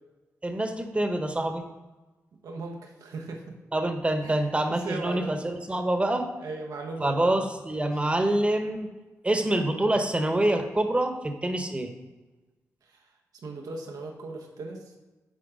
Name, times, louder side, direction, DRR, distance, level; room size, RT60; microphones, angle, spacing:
voice 1, 0.4-1.6 3.7-6.3 7.0-8.9 9.2-11.9, right 1 dB, 20° right, 6 dB, 1.0 m, -26 dB
voice 2, 2.4-3.4 4.2-5.3 6.4-7.3 7.8-7.9 12.9-13.0 13.4-14.9, right 3 dB, 90° right, 2 dB, 1.1 m, -38 dB
10.0 x 4.5 x 3.7 m, 1.2 s
cardioid pair, 70°, 6 cm